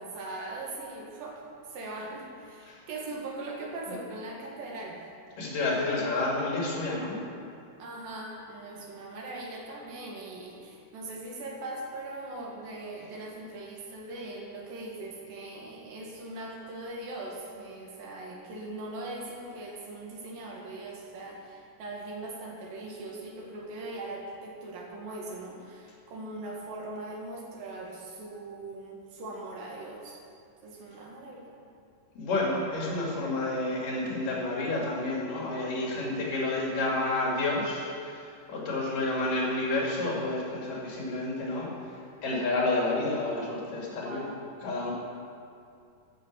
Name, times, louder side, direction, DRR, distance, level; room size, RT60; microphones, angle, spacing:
voice 1, 0.0-5.0 7.8-30.2 30.6-31.6 43.9-44.4, right 2 dB, 90° right, -2 dB, 3.6 m, -40 dB
voice 2, 5.4-7.2 32.2-41.7 42.2-44.3 44.6-44.9, left 2 dB, 75° left, -3 dB, 4.0 m, -30 dB
13.5 x 6.1 x 7.5 m, 2.4 s
omnidirectional pair, 3.9 m